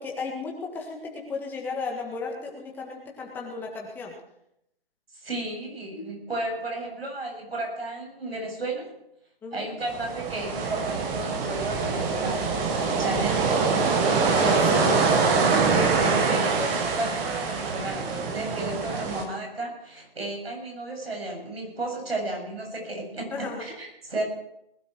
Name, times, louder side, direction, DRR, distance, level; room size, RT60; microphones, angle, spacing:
voice 1, 0.0-4.1 9.4-9.7 14.4-15.2 23.3-23.7, left 4 dB, 5° left, 0 dB, 1.7 m, -35 dB
voice 2, 5.1-8.9 9.5-13.5 15.6-24.2, right 2 dB, 85° right, 1 dB, 7.2 m, -33 dB
sound 1, 9.8-19.2, right 4 dB, 10° right, 1.0 m, -24 dB
20.0 x 12.0 x 4.6 m, 0.78 s
hypercardioid pair, 155°, 29 cm